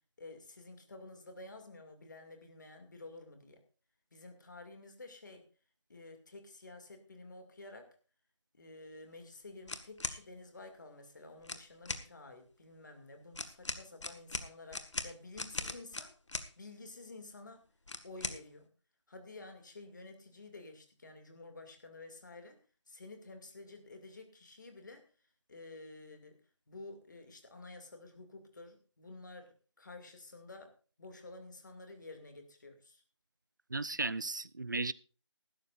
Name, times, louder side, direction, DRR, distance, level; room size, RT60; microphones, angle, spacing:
voice 1, 0.2-3.6 4.1-5.4 5.9-7.9 8.5-16.1 16.6-17.6 18.0-18.7 19.1-22.6 22.9-25.0 25.5-26.4 26.7-29.5 29.8-30.7 31.0-33.0, left 2 dB, 40° left, 6 dB, 2.4 m, -51 dB
sound 1, 9.7-10.2 11.4-12.1 13.3-16.5 17.9-18.4, left 2 dB, 75° left, 1.7 m, -39 dB
voice 2, 33.7-34.9, right 3 dB, 40° right, 19 dB, 0.5 m, -35 dB
18.5 x 12.5 x 2.5 m, 0.35 s
figure-of-eight pair, 175°, 15 cm